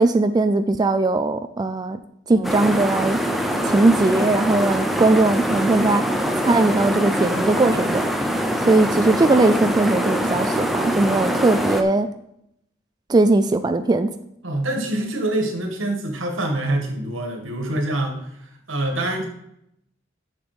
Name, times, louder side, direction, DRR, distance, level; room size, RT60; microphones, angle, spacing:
voice 1, 0.0-2.0 2.3-3.2 3.7-6.0 6.4-8.0 8.7-12.1 13.1-14.1, right 2 dB, 20° right, 8 dB, 0.3 m, -19 dB
sound 1, 2.4-11.8, equal, ahead, 0.7 m, -23 dB
voice 2, 14.4-18.2 18.7-19.3, right 1 dB, 85° right, 3 dB, 1.9 m, -25 dB
7.3 x 7.0 x 5.1 m, 0.76 s
head